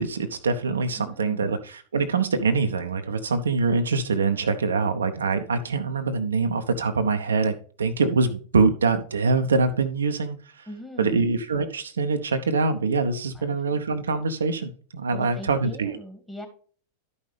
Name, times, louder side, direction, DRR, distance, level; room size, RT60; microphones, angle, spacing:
voice 1, 0.0-10.7 11.0-16.0, right 4 dB, 70° right, 7 dB, 0.7 m, -24 dB
voice 2, 1.0-1.5 10.7-11.3 13.3-13.8 15.1-16.5, left 1 dB, 5° left, 4 dB, 2.2 m, -41 dB
12.0 x 5.5 x 3.3 m, 0.43 s
figure-of-eight pair, 90°, 0 cm